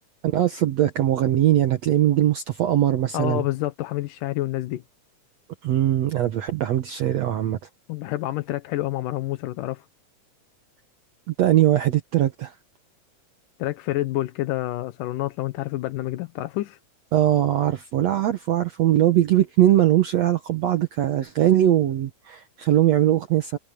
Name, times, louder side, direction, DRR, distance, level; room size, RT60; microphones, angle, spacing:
voice 1, 0.2-3.4 5.6-7.6 11.4-12.5 17.1-23.6, right 12 dB, 60° right, 2.1 m, -21 dB
voice 2, 3.1-4.8 7.9-9.9 13.6-16.8, left 16 dB, 85° left, 2.5 m, -28 dB
omnidirectional pair, 3.8 m